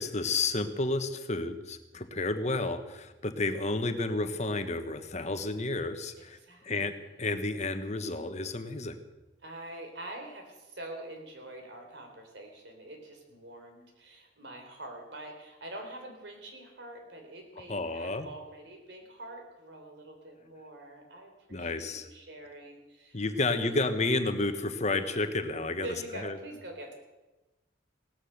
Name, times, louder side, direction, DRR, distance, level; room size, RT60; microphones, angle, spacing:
voice 1, 0.0-6.4 6.6-9.0 17.7-18.3 21.5-22.1 23.1-25.9 26.2-26.4, left 2 dB, 35° left, 9 dB, 1.2 m, -31 dB
voice 2, 1.9-2.4 6.3-6.7 9.4-23.9 25.8-26.9, right 1 dB, 60° right, 3 dB, 3.7 m, -45 dB
17.0 x 13.0 x 6.6 m, 1.1 s
head